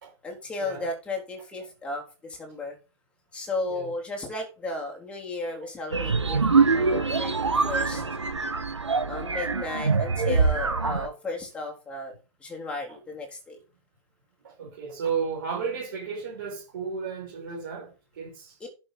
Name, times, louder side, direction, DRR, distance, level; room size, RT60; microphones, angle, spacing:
voice 1, 0.2-2.8 3.3-6.4 6.7-8.0 9.1-12.1 12.4-13.6, left 2 dB, 5° left, 3.5 m, -34 dB
sound 1, 5.9-11.1, right 4 dB, 75° right, 1.7 m, -24 dB
voice 2, 14.4-18.6, right 6 dB, 45° right, 5.2 m, -33 dB
11.0 x 6.5 x 4.0 m
figure-of-eight pair, 120°, 15 cm